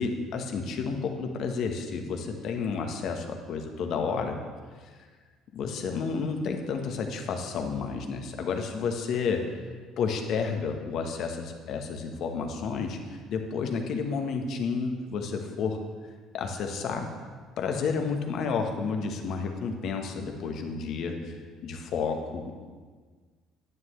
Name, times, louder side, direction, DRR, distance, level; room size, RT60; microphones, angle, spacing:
voice 1, 0.0-4.4 5.5-9.6 10.0-15.8 16.3-17.1 17.6-21.3 21.6-22.5, left 5 dB, 60° left, 4 dB, 1.1 m, -31 dB
10.5 x 9.3 x 3.2 m, 1.5 s
hypercardioid pair, 65°, 0 cm